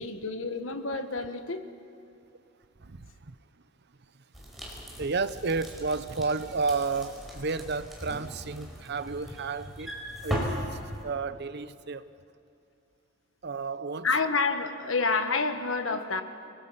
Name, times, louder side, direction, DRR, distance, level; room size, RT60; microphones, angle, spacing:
voice 1, 0.0-1.6 14.0-16.2, left 4 dB, 70° left, 8 dB, 1.5 m, -28 dB
voice 2, 2.8-3.3 5.0-9.9 10.2-10.5 11.0-12.1 13.4-14.1 15.9-16.0, right 4 dB, 60° right, 13 dB, 0.8 m, -31 dB
sound 1, 4.3-11.0, equal, ahead, 5.2 m, -38 dB
28.5 x 20.0 x 5.7 m, 2.6 s
head